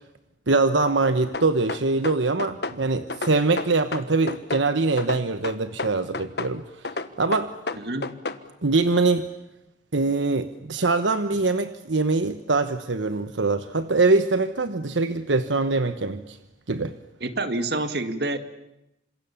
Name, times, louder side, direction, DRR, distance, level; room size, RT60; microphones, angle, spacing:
voice 1, 0.5-6.6 7.2-7.5 8.6-9.3 9.9-16.4 16.7-16.9, right 3 dB, 80° right, 10 dB, 1.2 m, -23 dB
sound 1, 1.3-2.8 3.1-4.7 5.0-6.5 6.8-8.4, left 3 dB, 60° left, 1.4 m, -31 dB
voice 2, 7.7-8.1 17.2-18.4, right 2 dB, 55° right, 9 dB, 2.1 m, -27 dB
28.0 x 26.5 x 7.3 m, 0.87 s
head